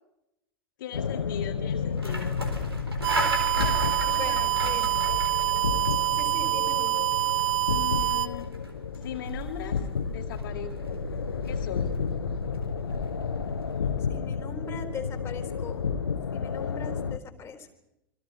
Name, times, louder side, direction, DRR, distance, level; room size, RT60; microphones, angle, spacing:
voice 1, 0.8-2.4 3.5-4.7 7.7-8.5 9.0-9.8 10.1-11.0 11.4-11.9, left 9 dB, 55° left, 3 dB, 2.0 m, -39 dB
sound 1, 0.9-17.2, left 6 dB, 75° left, 1.2 m, -32 dB
sound 2, 1.7-13.9, equal, 90° right, 4.2 m, -36 dB
sound 3, 3.0-8.3, right 17 dB, 40° right, 1.0 m, -26 dB
voice 2, 4.1-5.0 6.1-7.0 14.1-15.9 16.3-17.7, left 4 dB, 20° left, 6 dB, 3.7 m, -40 dB
27.0 x 24.5 x 5.3 m, 0.89 s
figure-of-eight pair, 90°, 13 cm